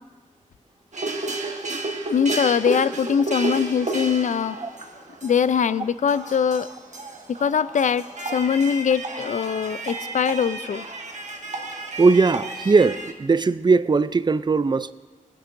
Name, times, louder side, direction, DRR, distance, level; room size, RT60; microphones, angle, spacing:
sound 1, 0.9-13.1, right 2 dB, 60° right, 1.3 m, -32 dB
voice 1, 2.1-4.6 5.2-6.7 7.3-8.0 8.3-10.8, left 7 dB, 65° left, 0.4 m, -22 dB
voice 2, 12.0-14.9, right 4 dB, 35° right, 0.4 m, -19 dB
18.5 x 10.0 x 2.6 m
cardioid pair, 60°, 13 cm